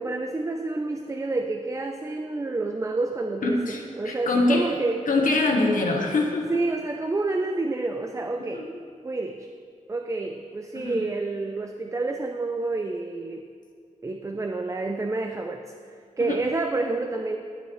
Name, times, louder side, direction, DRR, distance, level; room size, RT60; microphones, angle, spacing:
voice 1, 0.0-5.0 6.5-8.7 9.0-9.5 9.9-13.5 14.0-15.6 16.2-17.4, right 3 dB, 20° right, 4 dB, 0.4 m, -29 dB
voice 2, 3.4-4.7 5.1-6.5 8.5-8.7 10.7-11.0 16.2-16.4, left 2 dB, 85° left, 0 dB, 1.2 m, -24 dB
17.0 x 7.0 x 3.1 m, 2.2 s
wide cardioid pair, 130°, 14 cm